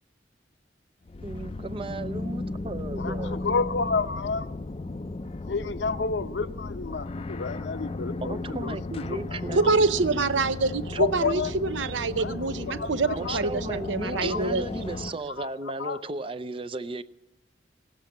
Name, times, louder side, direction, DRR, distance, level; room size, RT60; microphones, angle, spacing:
sound 1, 1.1-15.1, left 2 dB, 30° left, 0.4 m, -35 dB
voice 1, 1.2-3.4 8.2-9.7 10.9-11.0 13.1-17.0, right 2 dB, 30° right, 0.5 m, -35 dB
voice 2, 2.9-4.5 5.4-9.7 11.0-11.5 12.2-13.4 14.1-14.8 15.4-15.5 15.8-16.0, left 4 dB, 70° left, 0.7 m, -31 dB
voice 3, 9.6-14.6, right 3 dB, 80° right, 0.7 m, -26 dB
17.5 x 7.5 x 9.4 m
head